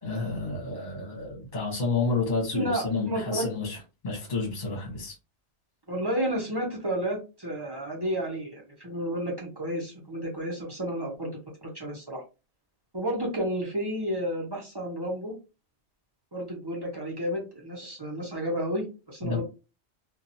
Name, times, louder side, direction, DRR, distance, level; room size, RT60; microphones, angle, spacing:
voice 1, 0.0-3.8 4.0-5.1 19.2-19.4, left 3 dB, 45° left, 1.0 m, -30 dB
voice 2, 2.5-3.5 5.9-12.2 12.9-15.3 16.3-19.4, equal, 25° right, 0.6 m, -31 dB
2.8 x 2.3 x 2.6 m
omnidirectional pair, 1.2 m